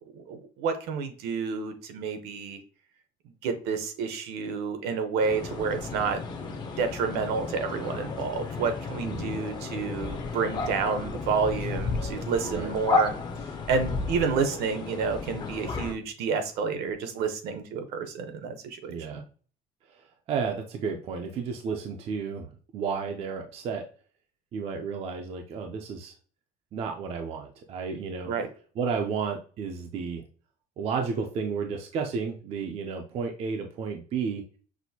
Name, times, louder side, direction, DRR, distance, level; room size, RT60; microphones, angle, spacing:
voice 1, 0.1-2.6 3.4-6.2 6.8-13.1 13.7-19.2 28.2-28.5, right 5 dB, 65° right, 7 dB, 0.9 m, -29 dB
sound 1, 5.2-15.9, left 4 dB, 25° left, 0.6 m, -33 dB
voice 2, 9.0-9.4 12.4-12.7 18.9-19.2 19.9-23.9 24.5-26.1 26.7-28.3 28.8-30.2 30.8-34.4, right 5 dB, 35° right, 4 dB, 0.5 m, -32 dB
6.1 x 2.6 x 2.7 m, 0.40 s
cardioid pair, 180°, 17 cm